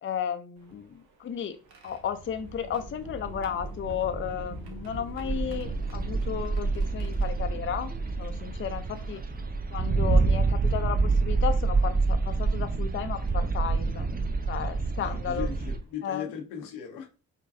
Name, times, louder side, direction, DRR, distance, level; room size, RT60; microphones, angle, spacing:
voice 1, 0.0-1.6 1.8-7.9 8.2-9.2 9.7-14.1 14.5-15.5 16.0-16.3, left 8 dB, 35° left, 9 dB, 0.5 m, -33 dB
sound 1, 0.6-9.9 10.7-10.8 12.3-12.5 13.3-13.5 15.1-15.2 15.6-15.8, right 2 dB, 80° right, 0.8 m, -42 dB
sound 2, 5.2-15.8, right 3 dB, 25° right, 0.6 m, -27 dB
voice 2, 15.0-17.1, left 8 dB, 85° left, 3 dB, 0.8 m, -38 dB
4.9 x 2.3 x 2.6 m, 0.34 s
hypercardioid pair, 45°, 37 cm